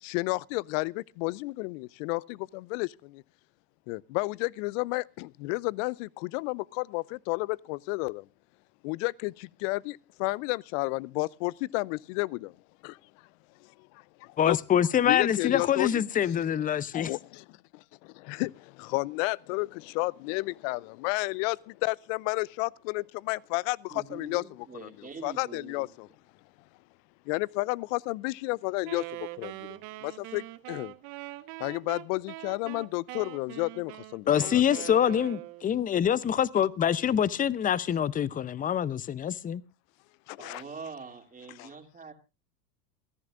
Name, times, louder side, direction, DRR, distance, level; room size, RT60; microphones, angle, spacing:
voice 1, 0.0-3.2 3.9-8.3 8.8-12.6 12.8-13.0 13.6-13.7 13.9-14.6 15.1-16.0 16.9-24.4 24.7-24.9 25.2-26.1 27.3-30.9 31.6-34.6 40.3-40.6 41.6-41.7, left 24 dB, 55° left, 0.6 m, -32 dB
voice 2, 14.4-17.1 34.3-39.6, left 9 dB, 20° left, 0.6 m, -25 dB
voice 3, 23.9-25.9 40.4-42.1, right 5 dB, 15° right, 2.9 m, -44 dB
Wind instrument woodwind instrument, 28.8-35.8, right 21 dB, 55° right, 1.0 m, -42 dB
28.0 x 10.5 x 2.5 m
hypercardioid pair, 95°, 47 cm